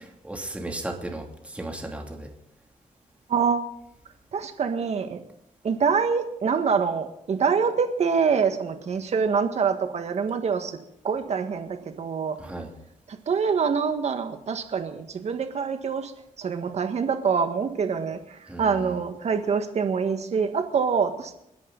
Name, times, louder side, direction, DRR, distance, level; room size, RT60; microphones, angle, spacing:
voice 1, 0.2-2.3 12.4-12.7 18.5-18.9, right 1 dB, 10° right, 1 dB, 2.8 m, -35 dB
voice 2, 3.3-3.7 4.3-5.2 5.6-10.8 11.0-12.4 13.1-16.1 16.4-21.3, right 6 dB, 55° right, 7 dB, 1.7 m, -25 dB
29.0 x 11.0 x 4.1 m, 0.78 s
wide cardioid pair, 125°, 14 cm